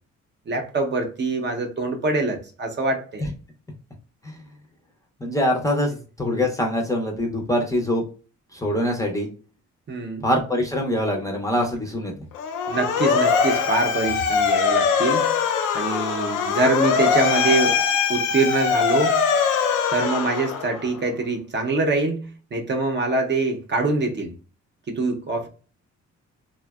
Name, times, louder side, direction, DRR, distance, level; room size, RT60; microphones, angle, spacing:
voice 1, 0.5-3.2 9.9-10.2 12.7-15.3 15.7-17.8 18.1-19.2 19.9-24.3 24.9-25.5, right 3 dB, 35° right, 3 dB, 0.6 m, -24 dB
voice 2, 5.2-5.9 6.2-8.0 8.5-9.3 10.2-12.1, left 1 dB, 10° left, 0 dB, 0.5 m, -23 dB
Motor vehicle (road) / Siren, 12.3-20.9, left 6 dB, 80° left, 0.5 m, -22 dB
2.6 x 2.1 x 2.2 m, 0.37 s
cardioid pair, 90°, 30 cm